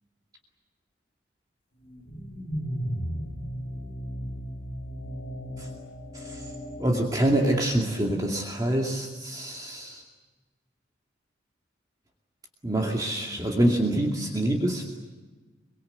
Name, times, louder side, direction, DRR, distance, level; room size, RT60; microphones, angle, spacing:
sound 1, 1.8-8.1, equal, 70° left, 4.0 m, -36 dB
voice 1, 6.8-10.0 12.6-14.8, right 1 dB, 20° right, 0 dB, 2.3 m, -26 dB
25.5 x 24.0 x 7.9 m, 1.3 s
head